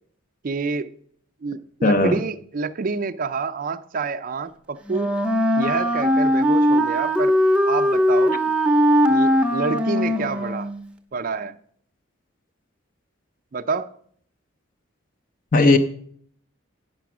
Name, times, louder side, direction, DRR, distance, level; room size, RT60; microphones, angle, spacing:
voice 1, 0.4-0.9 1.4-5.1 5.6-7.4 7.7-8.4 9.1-10.7 11.1-11.6 13.5-13.9, right 4 dB, 45° right, 0.4 m, -28 dB
voice 2, 1.8-2.2 15.5-15.8, left 2 dB, 45° left, 0.6 m, -16 dB
Wind instrument woodwind instrument, 4.9-10.8, equal, 5° right, 0.6 m, -20 dB
9.0 x 6.9 x 5.9 m
head